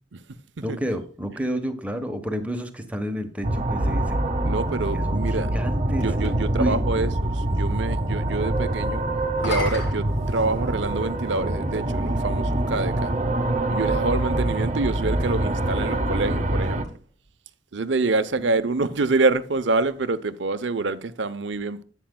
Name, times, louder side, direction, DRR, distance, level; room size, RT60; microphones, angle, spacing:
voice 1, 0.6-4.2 4.9-6.1 6.5-6.8, equal, 5° right, 1.1 m, -29 dB
sound 1, 3.4-16.8, right 1 dB, 40° right, 1.0 m, -25 dB
voice 2, 4.4-5.5 6.0-9.0 9.4-13.1 13.7-16.8 17.7-21.8, right 3 dB, 75° right, 0.7 m, -26 dB
sound 2, 4.6-6.4 9.2-11.0 11.9-12.0 15.8-17.3, left 1 dB, 65° left, 3.6 m, -36 dB
10.5 x 9.0 x 2.3 m
head